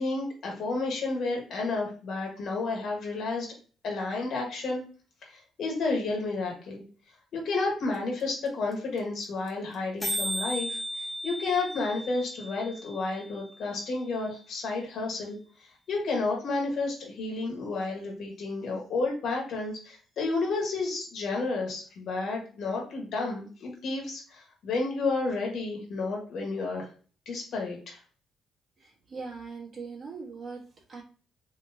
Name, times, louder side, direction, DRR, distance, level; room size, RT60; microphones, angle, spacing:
voice 1, 0.0-3.5 3.8-4.8 5.2-6.8 7.3-15.4 15.9-26.9 27.2-28.0, left 3 dB, 65° left, 0 dB, 1.4 m, -31 dB
sound 1, 7.9-8.0 8.2-8.3 8.5-8.7 9.0-9.1 9.2-9.5 9.7-9.8 10.0-14.0, equal, 15° left, 1.2 m, -36 dB
voice 2, 28.8-31.0, right 4 dB, 40° right, -2 dB, 1.4 m, -41 dB
3.4 x 3.1 x 2.7 m, 0.39 s
cardioid pair, 90°, 0 cm